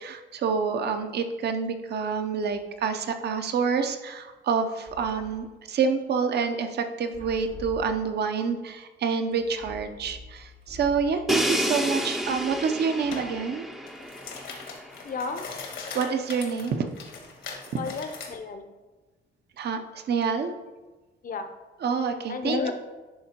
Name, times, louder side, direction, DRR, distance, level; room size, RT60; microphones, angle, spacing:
voice 1, 0.0-13.7 15.9-16.9 19.6-20.5 21.8-22.6, right 5 dB, 55° right, 8 dB, 0.6 m, -27 dB
sound 1, 2.4-2.7 4.6-5.5 7.0-8.3 9.3-11.5 12.2-13.4, equal, 80° right, 2.0 m, -46 dB
Crash cymbal, 11.3-15.1, equal, ahead, 0.4 m, -30 dB
sound 2, 13.1-13.3 13.7-18.3, left 5 dB, 75° left, 1.3 m, -40 dB
voice 2, 15.0-15.4 17.8-18.7 21.2-21.5 22.3-22.7, left 4 dB, 45° left, 8 dB, 0.6 m, -31 dB
10.5 x 3.7 x 2.9 m, 1.2 s
cardioid pair, 90°, 20 cm